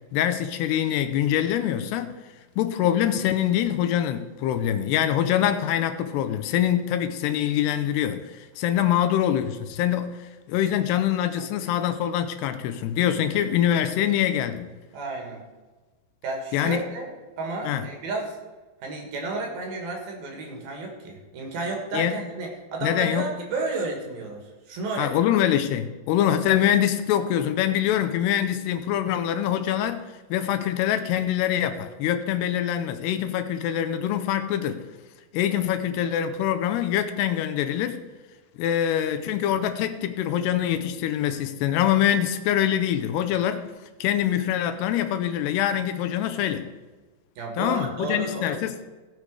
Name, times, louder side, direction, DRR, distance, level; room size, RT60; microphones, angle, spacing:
voice 1, 0.1-2.1 2.6-10.1 10.5-14.7 16.5-16.8 17.6-17.8 21.9-22.2 22.8-23.3 25.0-30.0 30.3-34.8 35.3-38.0 38.6-43.7 44.0-46.7 47.6-48.8, left 10 dB, 80° left, 2.5 m, -24 dB
voice 2, 14.9-15.4 16.2-18.4 18.8-25.1 47.4-48.6, right 3 dB, 60° right, 3.3 m, -32 dB
16.0 x 6.6 x 4.8 m
omnidirectional pair, 5.3 m